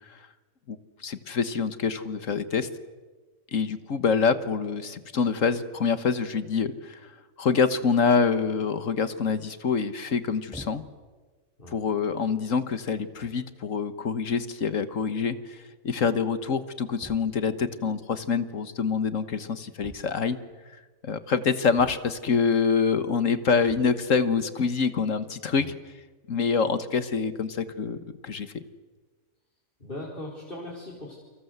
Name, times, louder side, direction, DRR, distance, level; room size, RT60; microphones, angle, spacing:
voice 1, 0.7-2.7 3.5-10.8 11.7-20.4 20.7-25.7 26.3-28.0 28.2-28.6, left 5 dB, 70° left, 12 dB, 1.7 m, -26 dB
sound 1, 10.5-11.1 11.9-12.0 12.8-12.9 13.2-13.5 14.7-14.8 15.0-15.1 15.4-15.5 17.0-17.5 19.8-20.5 21.8-22.4 23.6-24.1, equal, 5° left, 3.5 m, -47 dB
voice 2, 29.8-31.2, left 1 dB, 40° left, -3 dB, 4.8 m, -39 dB
29.5 x 25.0 x 8.1 m, 1.3 s
omnidirectional pair, 1.4 m